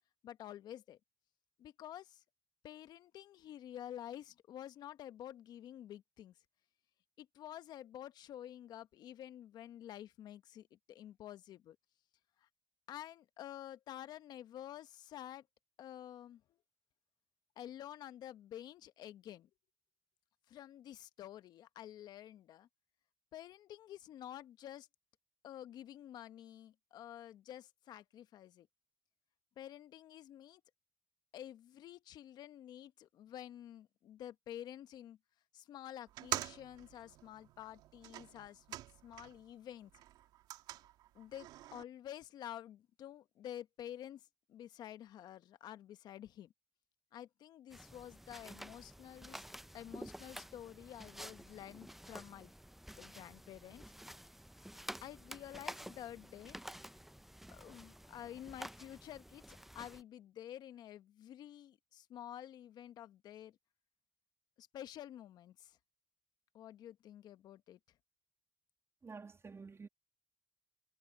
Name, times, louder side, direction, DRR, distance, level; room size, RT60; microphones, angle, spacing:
voice 1, 0.2-1.0 1.6-2.2 2.6-6.3 7.2-11.8 12.4-12.5 12.9-15.5 15.8-16.4 17.6-19.5 20.5-22.7 23.3-24.9 25.4-28.7 29.6-30.6 31.3-35.2 35.5-38.8 39.0-39.9 41.1-46.5 47.1-49.4 49.7-52.5 53.0-53.9 54.7-56.6 57.5-63.6 64.6-65.8 66.5-67.8, left 11 dB, 70° left, 1.3 m, -50 dB
sound 1, 36.1-39.5 39.8-41.8, right 14 dB, 80° right, 2.6 m, -46 dB
sound 2, 47.7-60.0, equal, 5° right, 0.7 m, -51 dB
voice 2, 69.0-69.9, right 4 dB, 40° right, 2.8 m, -50 dB
hypercardioid pair, 50°, 7 cm